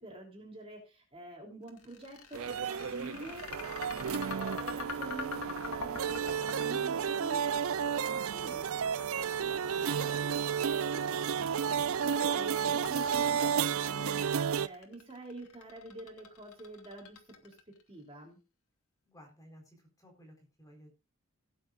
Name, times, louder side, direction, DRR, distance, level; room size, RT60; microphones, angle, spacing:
voice 1, 0.0-7.6 8.0-8.9 9.4-11.7 12.2-18.4, right 2 dB, 25° right, 1 dB, 3.3 m, -47 dB
sound 1, 1.7-17.8, left 4 dB, 80° left, 2.1 m, -45 dB
sound 2, 2.3-14.7, right 7 dB, 70° right, 0.5 m, -32 dB
voice 2, 19.0-21.0, equal, 15° left, 1 dB, 4.2 m, -56 dB
17.5 x 9.1 x 2.5 m, 0.30 s
head